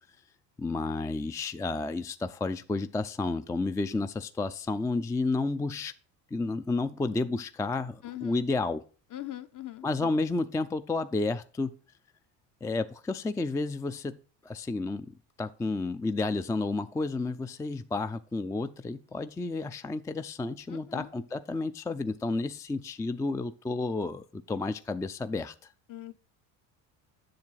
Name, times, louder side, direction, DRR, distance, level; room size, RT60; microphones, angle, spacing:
voice 1, 0.6-5.9 6.3-8.8 9.8-11.8 12.6-15.1 15.4-25.5, left 3 dB, 10° left, 0.3 m, -31 dB
voice 2, 8.0-8.5 9.1-10.2 20.7-21.1 25.9-26.1, left 14 dB, 45° left, 0.9 m, -41 dB
7.8 x 6.8 x 5.6 m
supercardioid pair, 95°, 43 cm